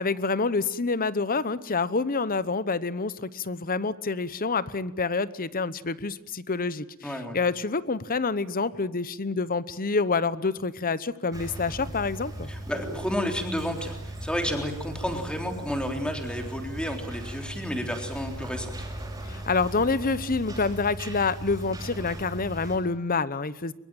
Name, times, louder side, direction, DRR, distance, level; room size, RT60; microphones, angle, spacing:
voice 1, 0.0-12.5 19.3-23.7, left 4 dB, 40° left, 16 dB, 1.0 m, -27 dB
voice 2, 7.0-7.4 12.5-18.7, equal, 5° left, 4 dB, 3.7 m, -31 dB
sound 1, 11.3-22.8, right 1 dB, 15° right, 6.3 m, -38 dB
23.5 x 22.5 x 9.1 m, 0.80 s
head